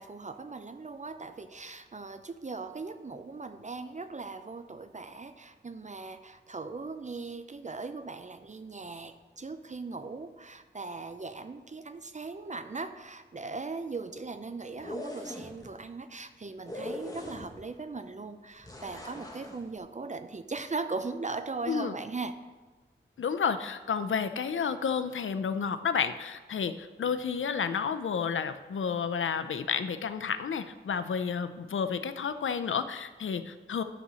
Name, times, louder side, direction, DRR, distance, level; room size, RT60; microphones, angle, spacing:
voice 1, 0.0-22.3, right 3 dB, 40° right, 10 dB, 0.5 m, -39 dB
sound 1, 14.7-15.7 16.7-17.7 18.6-19.6, left 1 dB, 20° left, 1.4 m, -40 dB
voice 2, 23.2-33.8, left 6 dB, 90° left, 11 dB, 0.5 m, -31 dB
11.0 x 4.1 x 6.2 m, 1.3 s
wide cardioid pair, 65°, 20 cm